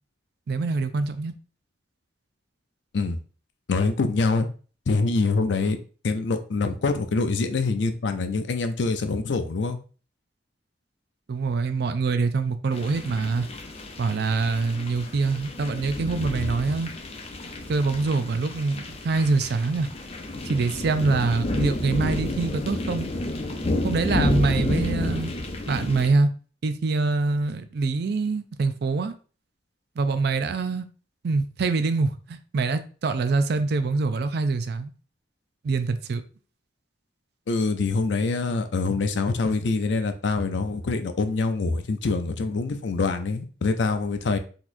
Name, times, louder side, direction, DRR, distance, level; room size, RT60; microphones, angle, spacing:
voice 1, 0.5-1.3 11.3-13.5 14.0-16.9 17.7-19.9 20.5-23.1 23.8-25.3 25.7-26.3 26.6-29.1 30.0-30.9 31.2-34.9 35.6-36.2, right 3 dB, 60° right, 0.4 m, -25 dB
voice 2, 3.7-4.5 4.9-5.8 6.0-9.8 37.5-44.4, left 3 dB, 75° left, 0.5 m, -25 dB
sound 1, 12.7-26.1, left 2 dB, 35° left, 0.6 m, -30 dB
4.0 x 2.9 x 2.5 m
head